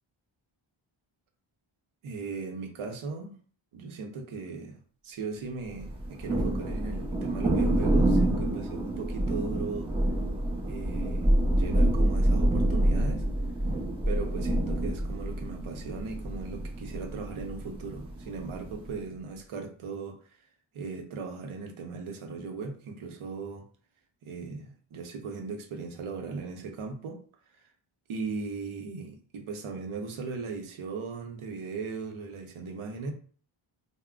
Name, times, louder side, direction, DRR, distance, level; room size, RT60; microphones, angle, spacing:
voice 1, 2.0-3.4 3.7-9.9 10.6-11.3 11.6-13.2 14.1-20.2 20.7-23.7 24.2-27.2 27.5-27.7 28.1-33.1, right 4 dB, 75° right, 4 dB, 0.8 m, -38 dB
Thunder, 5.8-19.0, right 1 dB, 10° right, 0.7 m, -27 dB
3.5 x 2.1 x 2.4 m, 0.44 s
wide cardioid pair, 105°, 49 cm